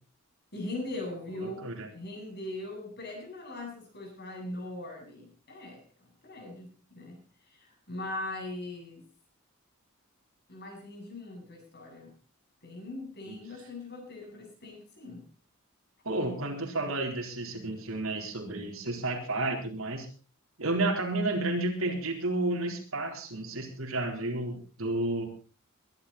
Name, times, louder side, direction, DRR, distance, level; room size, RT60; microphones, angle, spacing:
voice 1, 0.5-5.8 6.2-9.1 10.5-12.1 12.6-15.3, left 2 dB, 50° left, 1 dB, 8.0 m, -40 dB
voice 2, 1.3-1.9 13.3-13.4 16.0-20.1 20.6-25.3, right 2 dB, 70° right, 3 dB, 4.1 m, -31 dB
22.0 x 12.0 x 4.2 m, 0.36 s
head